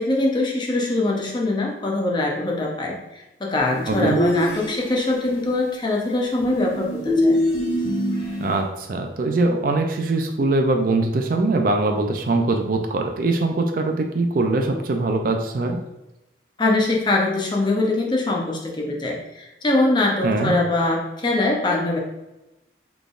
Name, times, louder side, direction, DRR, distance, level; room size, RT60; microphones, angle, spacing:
voice 1, 0.0-7.4 16.6-22.0, left 2 dB, 25° left, -1 dB, 0.6 m, -23 dB
sound 1, 3.9-5.2 6.4-8.6, equal, 60° left, 1.4 m, -23 dB
voice 2, 3.9-4.2 8.4-15.8 20.2-20.6, right 2 dB, 50° right, 4 dB, 0.3 m, -22 dB
4.0 x 3.4 x 2.4 m, 0.96 s
head